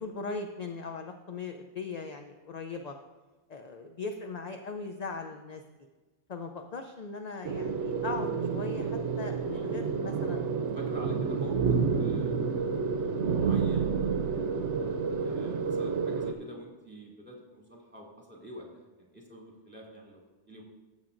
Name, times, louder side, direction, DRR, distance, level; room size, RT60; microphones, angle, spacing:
voice 1, 0.0-2.9 3.5-5.6 6.3-10.5 12.2-12.3, left 4 dB, 50° left, 5 dB, 0.5 m, -39 dB
sound 1, 7.4-16.3, right 5 dB, 80° right, 0.9 m, -29 dB
voice 2, 9.5-9.8 10.4-12.5 13.3-14.5 15.2-20.6, equal, 10° right, -2 dB, 1.8 m, -47 dB
14.5 x 7.3 x 2.5 m, 1.2 s
omnidirectional pair, 1.2 m